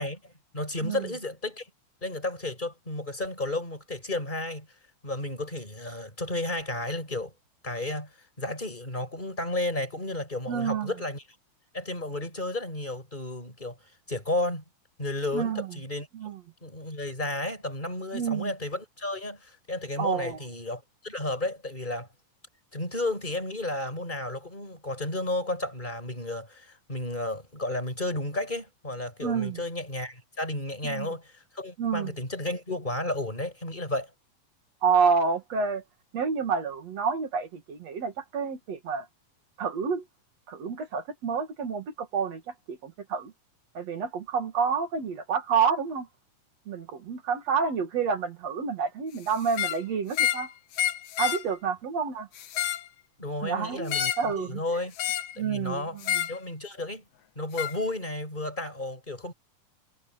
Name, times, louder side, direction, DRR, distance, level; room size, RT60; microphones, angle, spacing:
voice 1, 0.0-1.7 2.0-4.7 5.0-7.3 7.6-8.1 8.4-11.2 11.7-13.8 14.1-14.6 15.0-16.1 16.6-22.1 22.7-34.1 53.2-54.9 55.4-56.0 56.3-57.0 57.4-59.3, left 2 dB, 10° left, 6.3 m, -32 dB
voice 2, 10.5-10.9 15.3-15.7 16.1-16.4 18.1-18.5 20.0-20.4 29.2-29.6 30.8-31.1 31.8-32.1 34.8-35.8 36.1-39.0 39.6-40.0 40.5-42.4 42.7-43.3 43.7-46.1 46.7-50.5 51.2-52.3 53.4-54.6 55.4-56.3, right 6 dB, 50° right, 3.0 m, -29 dB
sound 1, 49.5-49.8 50.1-50.5 50.7-51.4 52.4-52.9 53.9-54.3 55.0-55.3 56.0-56.4 57.6-57.8, left 10 dB, 65° left, 2.3 m, -28 dB
omnidirectional pair, 4.1 m